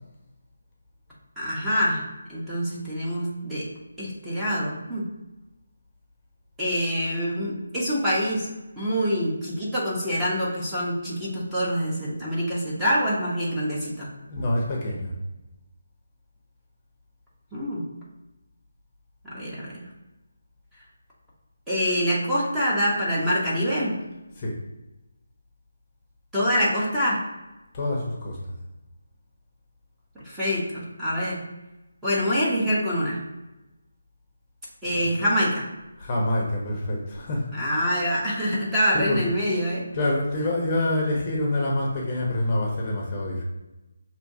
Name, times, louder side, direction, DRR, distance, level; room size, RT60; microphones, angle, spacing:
voice 1, 1.4-2.0 2.3-3.6 4.0-5.1 6.6-8.5 8.8-14.1 17.5-17.8 19.2-19.8 21.7-24.0 26.3-27.2 30.2-31.4 32.0-33.2 34.8-35.6 37.5-39.8, equal, 5° right, -9 dB, 0.9 m, -25 dB
voice 2, 14.3-15.1 24.4-24.6 27.7-28.4 34.8-35.2 36.0-37.9 38.9-39.2 39.9-43.4, left 1 dB, 25° left, -2 dB, 0.8 m, -26 dB
6.0 x 2.8 x 2.7 m, 1.0 s
figure-of-eight pair, 170°, 0 cm